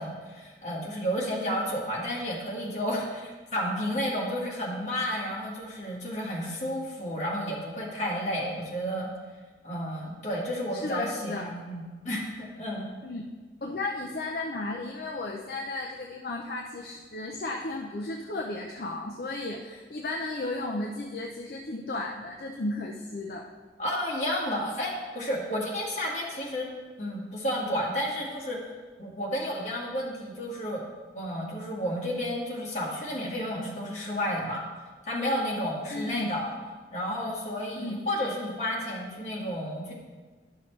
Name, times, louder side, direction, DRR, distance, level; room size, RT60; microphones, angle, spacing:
voice 1, 0.0-9.1 9.6-12.9 23.8-26.7 27.0-28.6 29.0-30.8 31.1-34.6 35.1-36.5 36.9-39.9, equal, 40° left, -4 dB, 1.8 m, -31 dB
voice 2, 10.8-11.5 13.0-13.2 13.6-23.5 35.9-36.3 37.8-38.0, left 2 dB, 55° left, 0 dB, 0.6 m, -34 dB
11.5 x 5.6 x 3.2 m, 1.4 s
head